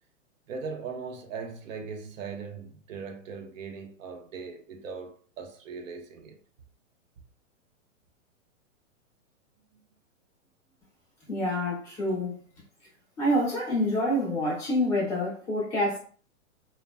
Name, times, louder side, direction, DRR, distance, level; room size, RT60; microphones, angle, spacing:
voice 1, 0.5-6.4, right 5 dB, 75° right, 0.6 m, -39 dB
voice 2, 11.3-12.4 13.2-16.0, left 1 dB, 5° left, 0.4 m, -27 dB
2.5 x 2.1 x 2.2 m
hypercardioid pair, 155°, 39 cm